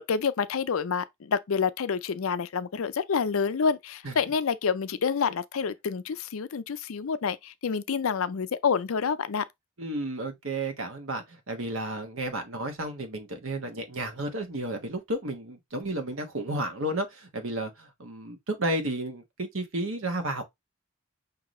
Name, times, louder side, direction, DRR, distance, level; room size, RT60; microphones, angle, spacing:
voice 1, 0.1-9.4, left 6 dB, 70° left, 0.5 m, -28 dB
voice 2, 9.8-20.4, right 1 dB, 65° right, 1.3 m, -32 dB
5.9 x 2.8 x 3.1 m
head